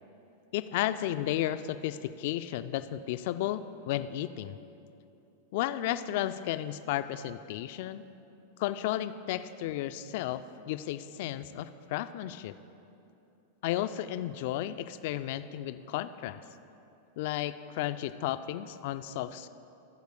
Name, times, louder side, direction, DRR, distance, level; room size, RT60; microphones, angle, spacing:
voice 1, 0.5-4.6 5.5-8.0 8.6-12.5 13.6-16.4 17.2-19.5, left 13 dB, 50° left, 12 dB, 0.3 m, -33 dB
13.5 x 4.7 x 6.4 m, 2.8 s
figure-of-eight pair, 90°, 0 cm